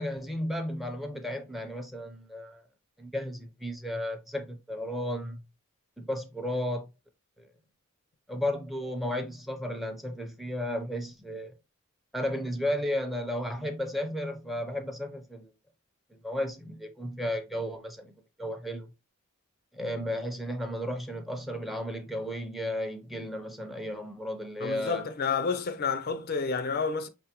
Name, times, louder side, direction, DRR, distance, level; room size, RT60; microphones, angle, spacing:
voice 1, 0.0-2.6 3.0-5.4 6.0-6.9 7.4-7.5 8.3-11.5 12.1-15.5 16.2-18.1 18.4-18.9 19.7-25.0, left 1 dB, ahead, 0.6 m, -34 dB
voice 2, 24.6-27.1, left 5 dB, 45° left, 0.4 m, -30 dB
5.3 x 3.4 x 2.9 m
head